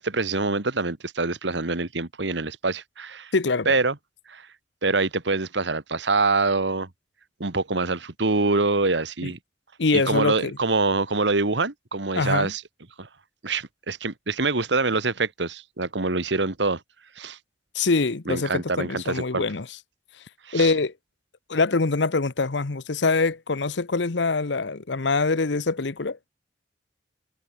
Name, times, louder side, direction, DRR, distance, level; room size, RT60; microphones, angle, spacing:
voice 1, 0.0-3.3 3.6-3.9 4.3-4.5 4.8-6.9 7.4-9.4 9.9-12.6 13.0-13.1 13.4-16.8 17.2-17.4 18.3-19.4 20.4-20.7, right 3 dB, 75° right, 1.7 m, -25 dB
voice 2, 3.3-3.8 9.2-9.3 9.8-10.6 12.1-12.5 17.7-19.7 20.5-20.9 21.5-26.2, left 3 dB, 75° left, 0.9 m, -24 dB
head